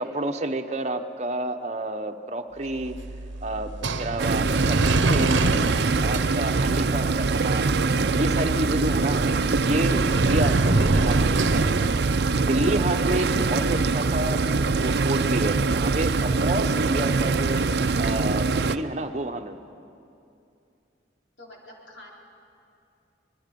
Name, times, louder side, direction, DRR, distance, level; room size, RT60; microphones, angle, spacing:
voice 1, 0.0-3.0 3.4-5.6 6.0-7.7 8.1-11.8 12.4-14.4 14.8-17.6 18.0-19.6, right 1 dB, 40° right, 6 dB, 0.9 m, -29 dB
sound 1, 2.7-15.8, right 2 dB, 85° right, 0.8 m, -28 dB
sound 2, 4.2-18.8, right 4 dB, 60° right, 0.5 m, -23 dB
voice 2, 21.4-22.1, left 1 dB, 85° left, -3 dB, 4.2 m, -46 dB
25.5 x 20.5 x 5.3 m, 2.6 s
head